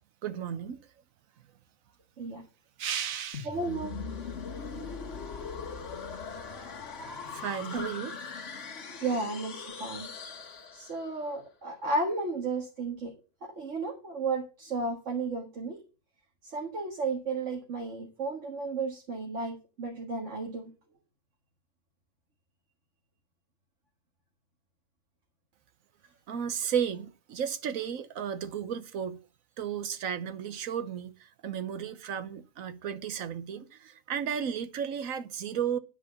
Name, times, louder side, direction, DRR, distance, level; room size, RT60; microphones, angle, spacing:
voice 1, 0.2-0.8 2.8-3.5 7.3-8.1 9.8-10.0 26.3-29.2 29.6-35.8, right 8 dB, 80° right, 1.3 m, -34 dB
sound 1, 3.3-11.2, left 5 dB, 60° left, 1.6 m, -40 dB
voice 2, 3.4-4.3 7.7-7.9 9.0-10.4 10.7-13.1 13.4-15.8 16.4-20.7, right 3 dB, 60° right, 2.1 m, -33 dB
10.0 x 4.9 x 7.2 m
omnidirectional pair, 1.4 m